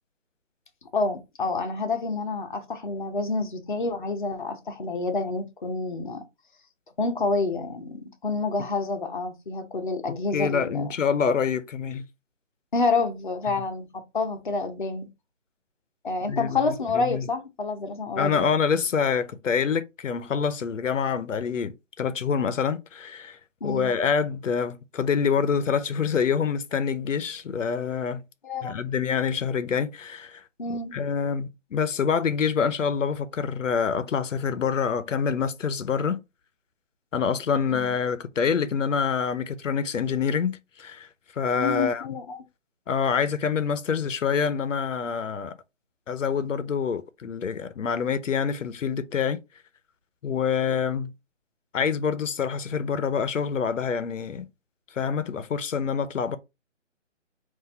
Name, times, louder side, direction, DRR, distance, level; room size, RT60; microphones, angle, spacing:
voice 1, 0.9-6.2 7.0-10.9 12.7-15.1 16.0-18.4 23.6-23.9 28.4-28.7 30.6-31.0 37.7-37.9 41.5-42.4, left 3 dB, 40° left, 0.7 m, -28 dB
voice 2, 10.3-12.0 16.3-17.3 18.2-23.4 23.6-28.2 28.6-30.4 30.7-36.2 37.1-41.1 41.4-42.0 42.9-45.6 46.1-49.4 50.2-51.1 51.7-54.5 55.0-56.4, left 6 dB, 85° left, 0.7 m, -26 dB
4.0 x 2.6 x 4.2 m
hypercardioid pair, 180°, 37 cm